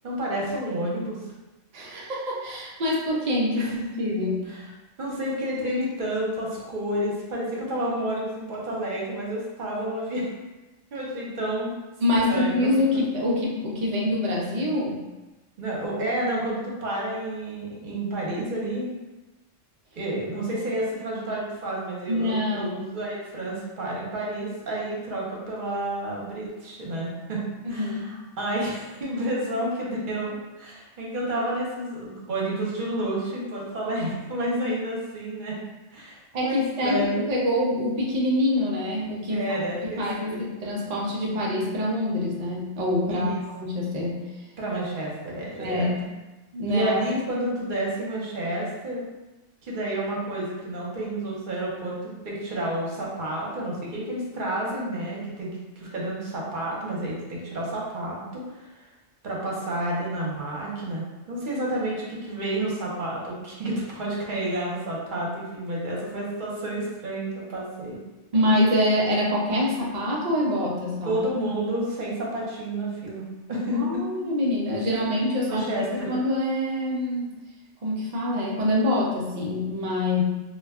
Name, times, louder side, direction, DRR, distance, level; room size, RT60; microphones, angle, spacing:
voice 1, 0.0-1.3 3.6-3.7 4.5-4.6 5.0-10.3 10.9-11.7 12.2-12.7 15.6-18.9 20.0-27.4 27.7-28.1 28.4-35.6 35.9-37.3 39.3-40.5 43.1-43.3 44.6-45.9 46.7-49.0 49.6-58.7 59.2-68.0 71.0-74.3 75.5-76.1, right 1 dB, 50° right, -4 dB, 0.7 m, -30 dB
voice 2, 1.7-4.5 12.0-15.0 22.1-22.7 27.6-28.1 36.3-39.5 40.0-43.3 43.6-44.2 45.6-45.9 46.5-47.0 68.3-71.2 73.8-77.3 77.8-80.2, left 1 dB, 80° right, -4 dB, 0.3 m, -25 dB
2.2 x 2.1 x 3.4 m, 1.1 s
omnidirectional pair, 1.3 m